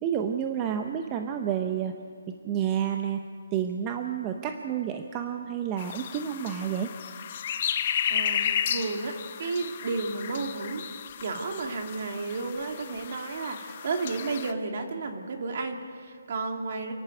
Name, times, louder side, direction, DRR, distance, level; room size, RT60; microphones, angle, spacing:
voice 1, 0.0-1.9 2.4-3.2 3.5-6.9, right 9 dB, 15° right, 5 dB, 0.8 m, -30 dB
sound 1, 5.8-14.5, left 9 dB, 35° left, 0.9 m, -33 dB
voice 2, 8.1-10.8 11.2-16.9, right 3 dB, 45° right, 3 dB, 2.5 m, -32 dB
28.5 x 11.0 x 9.2 m, 2.1 s
hypercardioid pair, 170°, 0 cm